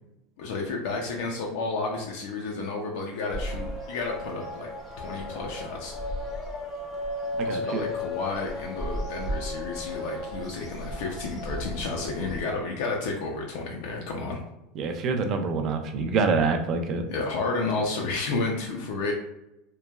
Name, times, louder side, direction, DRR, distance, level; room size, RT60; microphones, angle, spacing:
voice 1, 0.4-4.7 5.0-6.0 7.4-14.4 17.1-19.1, left 3 dB, 70° left, 0 dB, 0.4 m, -31 dB
sound 1, 3.3-12.4, left 1 dB, 20° left, 0.5 m, -34 dB
voice 2, 7.5-7.8 14.8-17.1, right 4 dB, 35° right, 6 dB, 0.3 m, -26 dB
3.0 x 2.1 x 2.2 m, 0.91 s
supercardioid pair, 155°, 0 cm